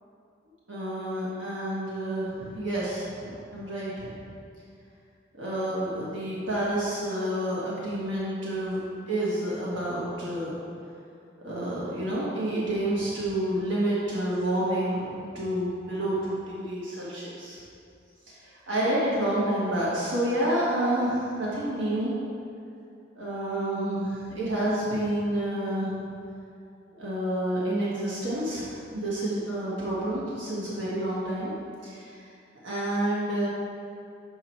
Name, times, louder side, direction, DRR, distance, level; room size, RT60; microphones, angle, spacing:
voice 1, 0.7-4.3 5.4-8.8 9.1-10.5 11.4-17.6 18.3-22.1 23.1-26.0 26.9-31.5 31.8-32.2 32.6-33.5, right 1 dB, 80° right, -7 dB, 1.4 m, -29 dB
6.6 x 4.7 x 4.5 m, 2.5 s
head